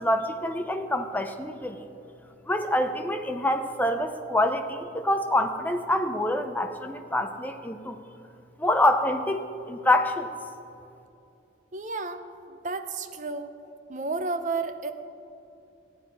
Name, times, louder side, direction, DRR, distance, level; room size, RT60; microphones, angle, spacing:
voice 1, 0.0-1.8 2.5-8.0 8.6-10.3, left 1 dB, 10° left, 6 dB, 0.5 m, -26 dB
voice 2, 11.7-13.5 13.9-14.9, right 3 dB, 40° right, 9 dB, 0.6 m, -32 dB
15.0 x 9.8 x 4.7 m, 2.7 s
head